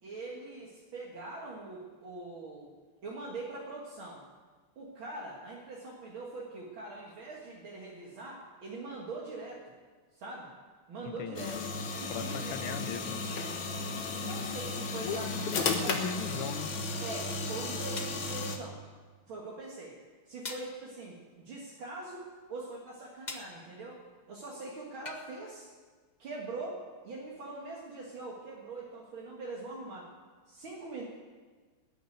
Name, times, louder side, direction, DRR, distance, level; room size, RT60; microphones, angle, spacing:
voice 1, 0.0-2.7 3.0-4.2 4.8-9.6 10.1-10.5 10.9-11.6 12.0-12.6 13.8-15.3 15.6-16.0 17.0-18.8 19.3-20.0 20.3-22.2 22.5-25.7 26.2-30.1 30.5-31.0, right 3 dB, 65° right, -3 dB, 2.5 m, -43 dB
voice 2, 11.0-11.5 12.1-13.2 15.0-16.7, left 7 dB, 80° left, 9 dB, 1.8 m, -38 dB
sound 1, 11.4-18.6, left 3 dB, 65° left, 2.1 m, -34 dB
sound 2, 18.0-18.3 20.5-20.8 23.3-23.6 25.1-25.3, left 3 dB, 30° left, 0.9 m, -41 dB
19.5 x 6.7 x 9.2 m, 1.5 s
omnidirectional pair, 2.4 m